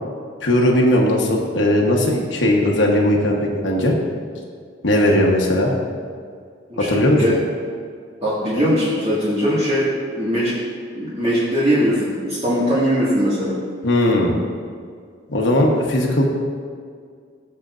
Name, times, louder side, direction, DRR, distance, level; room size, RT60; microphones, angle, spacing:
voice 1, 0.4-3.9 4.8-5.7 6.8-7.2 13.8-14.3 15.3-16.2, left 1 dB, 75° left, -1 dB, 1.2 m, -17 dB
voice 2, 6.7-7.3 8.2-10.5 10.9-13.6, equal, 35° right, -10 dB, 1.9 m, -20 dB
15.5 x 6.7 x 2.6 m, 2.1 s
head